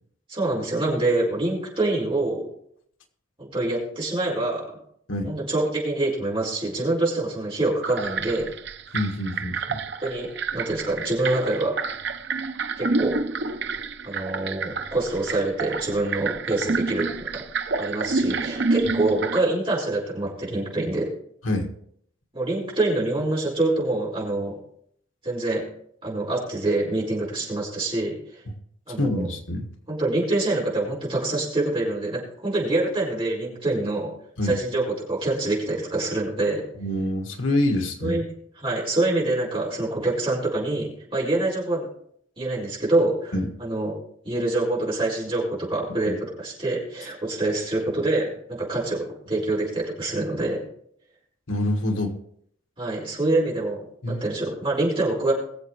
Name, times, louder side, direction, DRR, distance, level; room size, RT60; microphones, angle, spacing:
voice 1, 0.3-2.5 3.4-4.7 5.2-8.5 10.0-10.3 10.5-11.8 12.8-13.2 14.0-17.1 17.3-17.4 17.8-21.1 22.3-24.6 25.2-25.6 26.0-28.4 28.9-29.3 29.9-34.1 34.4-36.7 38.0-38.2 38.6-41.9 42.4-44.0 44.3-50.6 52.8-55.3, right 2 dB, 25° right, -5 dB, 5.1 m, -25 dB
sound 1, 7.8-19.4, right 3 dB, 55° right, 0.7 m, -29 dB
voice 2, 8.9-9.8 21.4-21.7 29.0-29.7 34.4-34.6 36.8-38.2 43.3-43.5 46.1-46.2 51.5-52.1 54.0-54.2, left 1 dB, 75° left, 3 dB, 1.7 m, -26 dB
22.0 x 7.6 x 3.2 m, 0.67 s
head